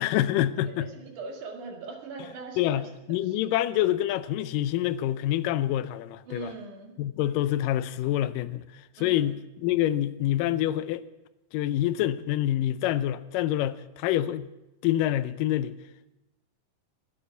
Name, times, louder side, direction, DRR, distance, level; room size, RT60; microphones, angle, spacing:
voice 1, 0.0-0.9 2.6-6.5 7.0-8.6 9.0-11.0 11.5-14.5 14.8-15.7, left 13 dB, 85° left, 2.3 m, -26 dB
voice 2, 0.6-2.8 6.3-7.0 9.0-9.2, right 4 dB, 70° right, 3.3 m, -40 dB
12.0 x 10.0 x 6.9 m
omnidirectional pair, 3.8 m